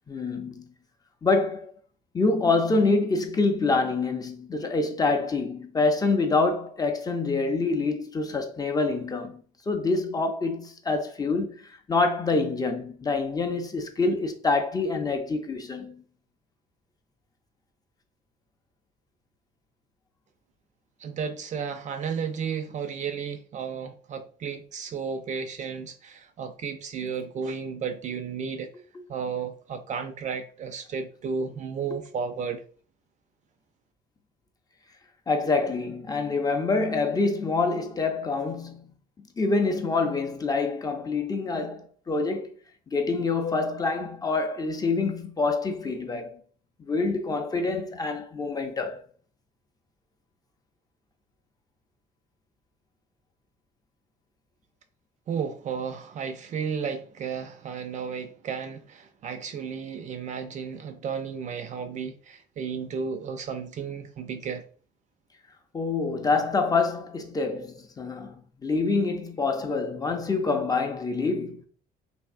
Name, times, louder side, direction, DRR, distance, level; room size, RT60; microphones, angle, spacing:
voice 1, 0.1-0.7 1.2-1.7 2.1-16.0 27.0-27.1 35.3-38.9 39.4-42.5 42.9-46.4 46.8-49.0 65.7-71.6, left 3 dB, 20° left, 0.5 m, -26 dB
voice 2, 21.0-28.7 29.1-32.6 55.3-64.6, right 6 dB, 45° right, 0.4 m, -33 dB
3.3 x 2.6 x 2.5 m
cardioid pair, 110°, 17 cm